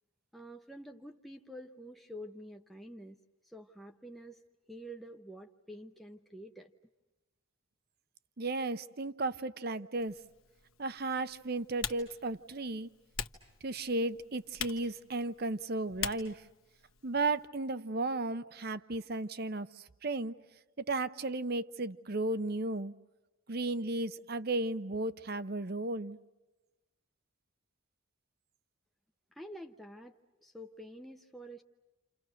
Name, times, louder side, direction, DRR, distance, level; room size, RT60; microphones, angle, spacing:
voice 1, 0.3-3.2 3.4-4.4 4.7-6.7 29.3-31.6, equal, ahead, 0.8 m, -48 dB
voice 2, 8.4-10.2 10.8-12.9 13.6-16.4 17.0-19.7 20.0-20.3 20.8-22.9 23.5-26.2, right 2 dB, 50° right, 0.8 m, -34 dB
Typing, 10.0-17.5, left 9 dB, 85° left, 1.4 m, -44 dB
29.0 x 28.5 x 6.4 m
head